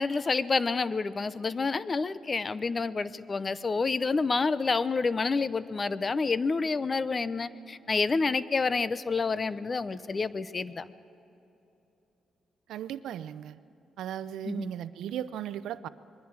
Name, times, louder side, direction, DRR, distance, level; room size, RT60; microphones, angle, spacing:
voice 1, 0.0-10.9 14.4-14.7, left 4 dB, 35° left, 16 dB, 0.6 m, -28 dB
voice 2, 12.7-13.6 14.0-15.9, right 10 dB, 85° right, 14 dB, 0.6 m, -36 dB
27.0 x 21.5 x 4.7 m, 3.0 s
cardioid pair, 90°, 0 cm